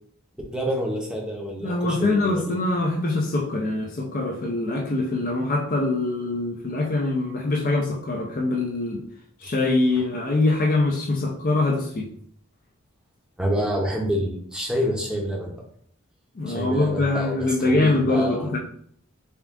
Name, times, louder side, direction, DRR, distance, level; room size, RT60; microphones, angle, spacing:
voice 1, 0.5-2.6 13.4-15.6 16.5-18.5, equal, 5° right, -1 dB, 0.7 m, -27 dB
voice 2, 1.6-9.0 9.4-12.1 16.4-18.6, left 2 dB, 40° left, 0 dB, 0.5 m, -23 dB
3.6 x 2.4 x 3.5 m, 0.63 s
head